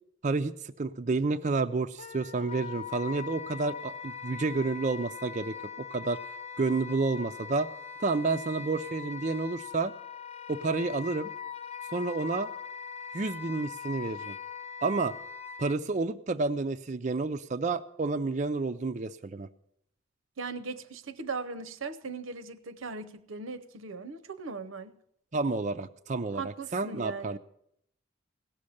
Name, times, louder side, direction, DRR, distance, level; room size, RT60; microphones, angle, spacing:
voice 1, 0.8-5.6 5.9-6.2 6.6-7.7 8.0-9.9 10.5-11.3 11.9-12.5 13.1-14.4 14.8-15.1 15.6-19.5 25.3-27.4, right 3 dB, 35° right, 0.5 m, -30 dB
Wind instrument woodwind instrument, 2.0-15.8, left 6 dB, 35° left, 0.8 m, -41 dB
voice 2, 20.4-25.0 26.3-27.4, right 4 dB, 90° right, 0.8 m, -39 dB
17.0 x 6.5 x 8.4 m
head